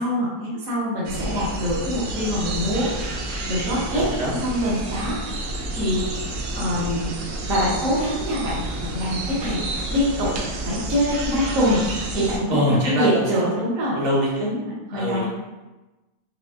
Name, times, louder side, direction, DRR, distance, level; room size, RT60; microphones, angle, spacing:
voice 1, 0.0-2.9 3.3-5.2 5.5-10.3 10.6-13.9 14.4-15.3, equal, 60° right, -6 dB, 1.4 m, -25 dB
sound 1, 1.0-12.4, right 2 dB, 90° right, 0.5 m, -30 dB
voice 2, 3.6-4.3 12.5-13.5 13.9-14.5 14.9-15.3, equal, 35° right, -5 dB, 0.8 m, -24 dB
5.1 x 2.3 x 2.5 m, 1.1 s
omnidirectional pair, 1.6 m